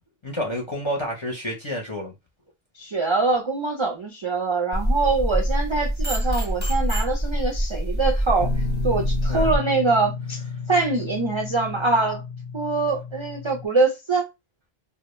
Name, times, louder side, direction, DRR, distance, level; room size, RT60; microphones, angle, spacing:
voice 1, 0.2-2.1 9.3-9.5, equal, 35° left, 0.5 m, -29 dB
voice 2, 2.8-8.5 8.8-10.4 10.7-12.2 12.5-14.3, right 3 dB, 50° right, 0.3 m, -24 dB
sound 1, 4.7-9.6, equal, 10° right, 0.6 m, -25 dB
Guitar, 8.4-13.7, left 5 dB, 85° left, 0.9 m, -33 dB
2.2 x 2.0 x 2.9 m
omnidirectional pair, 1.0 m